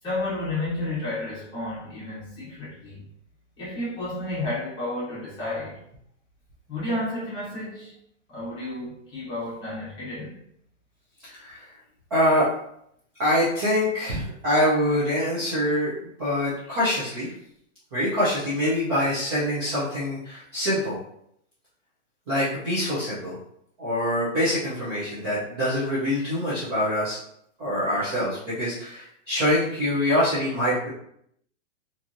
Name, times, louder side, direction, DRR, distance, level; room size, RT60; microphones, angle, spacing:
voice 1, 0.0-3.0 3.6-5.9 6.7-8.0 8.3-10.4, left 2 dB, 10° left, -10 dB, 0.9 m, -31 dB
voice 2, 11.3-11.6 12.1-12.5 13.2-17.3 17.9-21.0 22.3-23.4 23.8-27.2 27.6-30.9, equal, 20° right, -10 dB, 0.4 m, -25 dB
2.8 x 2.6 x 2.5 m, 0.72 s
hypercardioid pair, 165°, 37 cm